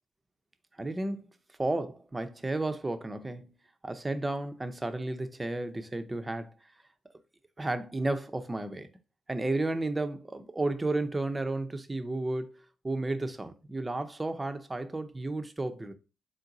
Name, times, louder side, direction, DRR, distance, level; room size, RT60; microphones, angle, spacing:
voice 1, 0.8-1.3 1.6-3.5 3.8-6.5 7.6-8.9 9.3-15.9, right 2 dB, 20° right, 0.6 m, -33 dB
3.8 x 2.6 x 3.9 m
hypercardioid pair, 50°, 0 cm